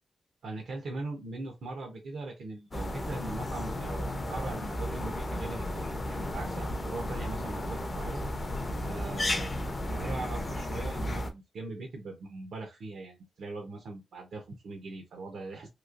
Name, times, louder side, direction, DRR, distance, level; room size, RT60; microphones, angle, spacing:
voice 1, 0.4-8.2 8.8-15.7, right 3 dB, 70° right, 2 dB, 0.7 m, -40 dB
sound 1, 2.7-11.3, left 1 dB, 20° left, 0.5 m, -34 dB
3.1 x 2.8 x 2.4 m, 0.22 s
wide cardioid pair, 170°, 0 cm